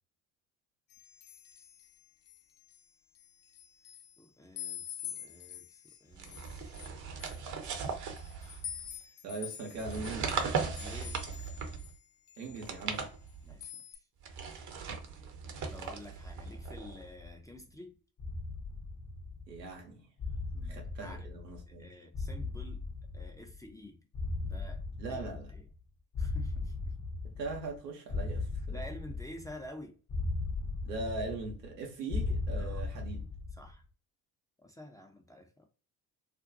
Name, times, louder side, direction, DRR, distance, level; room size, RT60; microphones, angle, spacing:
sound 1, 0.9-2.8 3.1-4.2 4.6-12.0 12.3-13.3 13.6-14.0, left 10 dB, 65° left, 0.7 m, -47 dB
voice 1, 4.2-6.4 10.8-11.2 13.4-14.0 15.7-18.0 20.5-21.3 21.7-22.8 23.1-24.0 24.4-24.8 25.1-25.7 26.2-26.9 28.7-30.0 32.6-32.8 33.6-33.8 34.6-35.7, left 1 dB, 10° left, 0.5 m, -50 dB
sound 2, 6.1-8.9 9.7-12.0 12.5-13.6 14.2-17.1, right 5 dB, 40° right, 0.7 m, -38 dB
voice 2, 9.2-10.5 12.4-13.0 19.5-20.0 20.7-21.9 25.0-25.5 27.2-28.5 30.8-33.2, right 3 dB, 90° right, 0.8 m, -40 dB
sound 3, 16.2-17.5 18.2-19.7 20.2-21.8 22.1-23.7 24.1-25.8 26.1-27.8 28.1-29.7 30.1-31.8 32.1-33.7, left 3 dB, 35° left, 0.8 m, -38 dB
2.5 x 2.2 x 2.5 m
hypercardioid pair, 50°, 47 cm